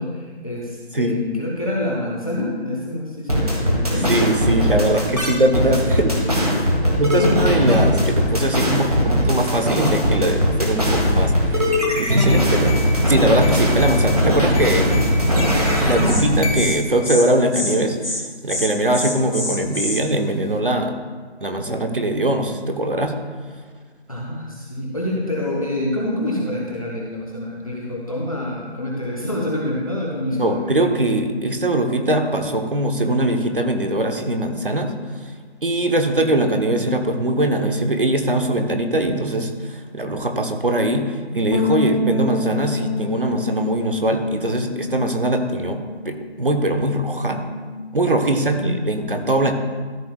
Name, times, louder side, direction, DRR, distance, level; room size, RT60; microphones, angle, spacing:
voice 1, 0.0-4.1 6.8-7.4 24.1-30.8 48.4-48.8, left 1 dB, 35° left, -3 dB, 1.0 m, -27 dB
sound 1, 3.3-16.8, equal, 35° right, 1.5 m, -19 dB
voice 2, 4.0-6.1 7.0-12.8 13.1-15.0 15.8-18.2 18.4-20.9 21.4-23.1 30.3-35.3 35.6-45.8 46.0-47.4 47.9-49.5, right 1 dB, 55° right, 5 dB, 1.0 m, -21 dB
Insect, 15.7-15.8 16.1-16.2 16.5-16.8 17.0-17.2 17.5-17.8 18.0-18.2 18.5-20.0, left 1 dB, 80° left, 2.7 m, -26 dB
sound 2, 41.5-46.1 46.4-47.8, left 3 dB, 50° left, 1.6 m, -28 dB
13.5 x 6.7 x 2.3 m, 1.5 s
figure-of-eight pair, 180°, 33 cm